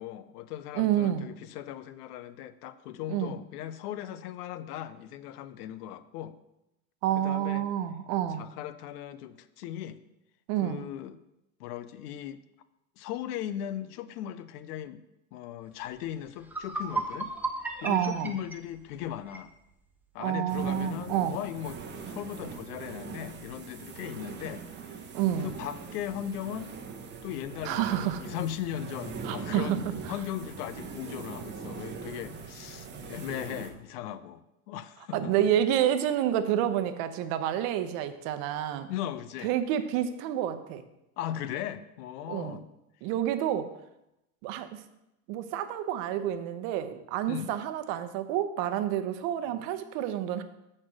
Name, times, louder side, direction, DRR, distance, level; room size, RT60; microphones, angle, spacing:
voice 1, 0.0-6.4 7.2-7.7 8.3-10.0 10.6-11.2 11.6-12.4 13.0-15.0 15.3-17.3 17.8-19.5 20.1-25.1 25.4-26.7 27.2-29.8 30.1-35.3 38.9-39.5 41.2-42.7 47.3-47.5, left 11 dB, 85° left, 14 dB, 0.7 m, -38 dB
voice 2, 0.7-1.3 3.1-3.3 7.0-8.4 10.5-10.9 17.8-18.3 20.2-21.4 25.1-25.5 27.6-28.2 29.2-29.8 35.1-38.9 39.4-40.8 42.3-42.6 43.0-43.7 44.4-44.8 45.3-50.4, right 11 dB, 55° right, 10 dB, 0.8 m, -29 dB
sound 1, 16.0-16.1 16.4-19.5, right 3 dB, 5° right, 0.6 m, -35 dB
sound 2, 20.5-33.7, right 5 dB, 25° right, 0.9 m, -41 dB
7.8 x 4.3 x 6.2 m, 0.88 s
supercardioid pair, 130°, 45 cm